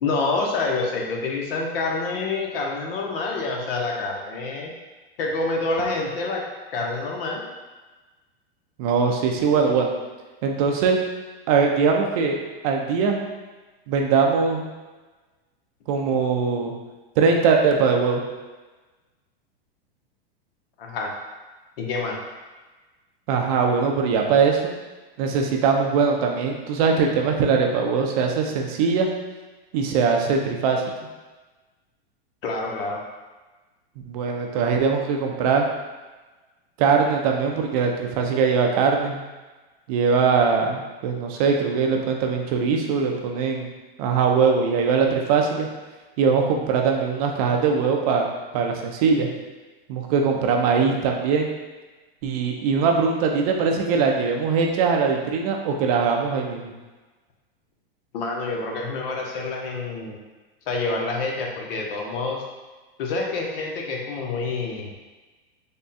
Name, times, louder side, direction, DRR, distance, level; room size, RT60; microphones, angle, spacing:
voice 1, 0.0-4.7 5.2-6.4 6.7-7.4 20.8-21.1 21.8-22.2 32.4-33.0 58.1-60.2 60.7-62.4 63.0-64.9, left 3 dB, 70° left, 0 dB, 0.8 m, -27 dB
voice 2, 8.8-9.9 10.4-11.0 11.5-12.4 12.6-13.2 13.9-14.6 15.9-16.7 17.2-18.2 23.3-24.7 25.2-29.1 29.7-30.8 34.1-35.7 36.8-39.2 39.9-43.7 44.0-45.7 46.2-48.3 48.5-49.3 49.9-51.5 52.2-56.7, right 5 dB, 40° right, 1 dB, 0.5 m, -21 dB
3.6 x 2.2 x 4.0 m, 1.2 s
supercardioid pair, 155°, 30 cm